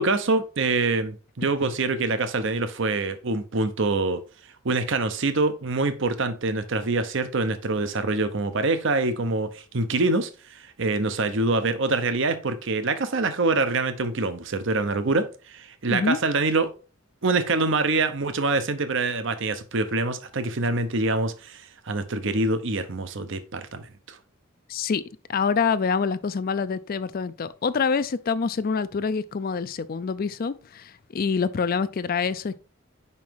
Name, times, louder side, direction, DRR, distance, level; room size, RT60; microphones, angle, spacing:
voice 1, 0.0-4.2 4.6-16.7 17.2-24.2, right 3 dB, 65° right, 0.8 m, -25 dB
voice 2, 24.7-25.0 25.3-32.6, left 5 dB, 45° left, 0.4 m, -26 dB
5.6 x 5.2 x 4.6 m
head